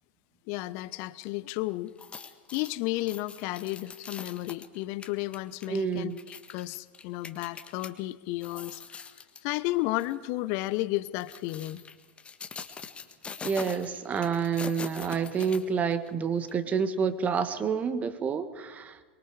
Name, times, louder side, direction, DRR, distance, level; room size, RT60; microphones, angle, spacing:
voice 1, 0.5-1.9 2.5-9.1 9.4-11.8, left 18 dB, 45° left, 16 dB, 0.9 m, -33 dB
sound 1, 1.9-7.9 8.3-9.5 9.9-10.1 11.0-16.1 16.5-16.6, left 5 dB, 20° left, 1.6 m, -43 dB
voice 2, 5.7-6.2 13.4-19.0, right 6 dB, 25° right, 10 dB, 1.6 m, -28 dB
23.5 x 23.0 x 4.9 m, 1.5 s
figure-of-eight pair, 95°, 6 cm